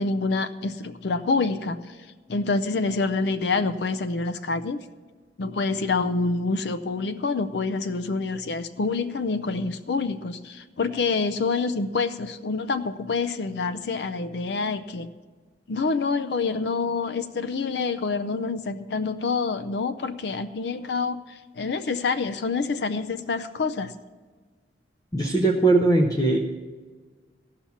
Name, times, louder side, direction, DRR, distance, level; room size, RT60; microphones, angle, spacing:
voice 1, 0.0-1.8 2.3-4.8 5.4-15.1 15.7-23.9, left 4 dB, 70° left, 12 dB, 0.5 m, -27 dB
voice 2, 25.1-26.4, right 2 dB, 20° left, 2 dB, 0.7 m, -20 dB
14.5 x 5.7 x 7.1 m, 1.4 s
head